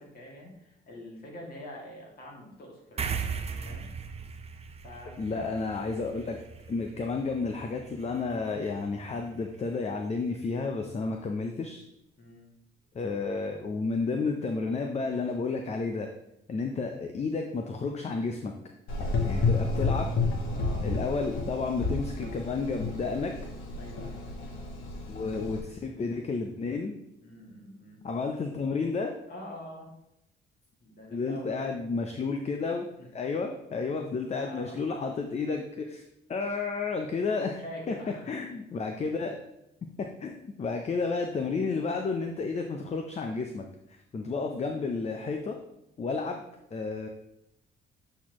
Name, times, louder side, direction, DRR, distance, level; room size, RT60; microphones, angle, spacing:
voice 1, 0.0-3.9 4.8-5.9 6.7-6.9 12.2-12.5 20.5-20.8 23.8-24.3 27.2-28.0 29.3-29.9 30.8-31.7 33.0-33.1 34.4-34.8 37.6-38.3 44.6-44.9, equal, 50° left, -2 dB, 2.2 m, -45 dB
sound 1, 3.0-9.8, right 6 dB, 30° right, 0.6 m, -39 dB
voice 2, 5.2-6.4 6.7-11.8 12.9-16.1 16.5-18.5 19.2-20.1 20.8-23.3 25.1-26.9 28.0-29.1 31.1-36.0 36.3-37.9 38.3-39.4 40.0-45.6 46.0-46.4 46.7-47.1, left 4 dB, 35° left, 4 dB, 0.6 m, -31 dB
Gurgling / Engine, 18.9-25.6, left 3 dB, 80° left, 1.3 m, -31 dB
8.1 x 4.3 x 3.0 m, 0.85 s
cardioid pair, 90°, 20 cm